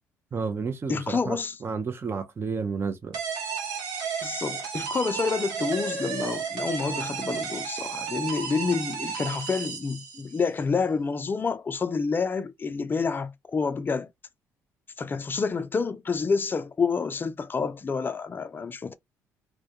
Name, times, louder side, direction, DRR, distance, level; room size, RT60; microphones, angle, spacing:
voice 1, 0.3-3.2, right 5 dB, 35° right, 0.5 m, -31 dB
voice 2, 0.9-1.6 4.2-14.1 15.0-18.9, left 5 dB, 30° left, 0.4 m, -28 dB
sound 1, 3.1-10.5, right 6 dB, 85° right, 0.8 m, -33 dB
2.2 x 2.1 x 2.7 m
supercardioid pair, 65°, 7 cm